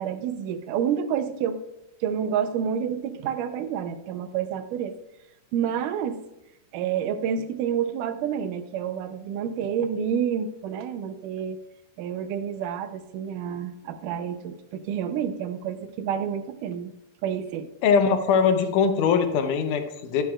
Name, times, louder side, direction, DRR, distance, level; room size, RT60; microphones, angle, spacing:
voice 1, 0.0-1.6 2.0-4.9 5.5-6.2 6.7-11.6 12.0-16.9 17.2-17.7, right 8 dB, 90° right, 10 dB, 2.3 m, -29 dB
voice 2, 17.8-20.2, left 6 dB, 85° left, 7 dB, 2.4 m, -21 dB
10.5 x 10.5 x 2.4 m, 0.87 s
omnidirectional pair, 3.6 m